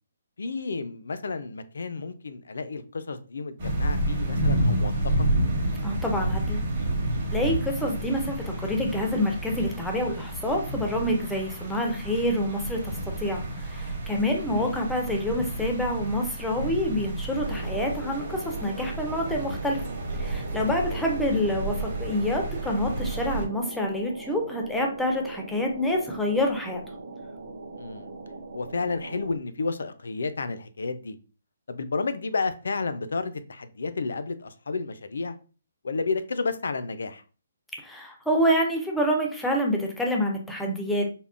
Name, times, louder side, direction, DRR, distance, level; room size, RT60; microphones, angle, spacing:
voice 1, 0.4-4.9 14.5-14.7 20.9-21.1 27.8-28.1 28.5-31.2 31.7-35.4 35.8-37.2, left 4 dB, 80° left, 0.4 m, -31 dB
sound 1, 3.6-23.4, right 1 dB, 35° right, 0.8 m, -30 dB
voice 2, 5.8-6.7 7.3-19.8 20.2-26.8 37.8-41.1, left 1 dB, ahead, 0.3 m, -27 dB
sound 2, 17.4-29.4, right 3 dB, 65° right, 0.5 m, -40 dB
3.5 x 2.1 x 2.4 m
hypercardioid pair, 175°, 0 cm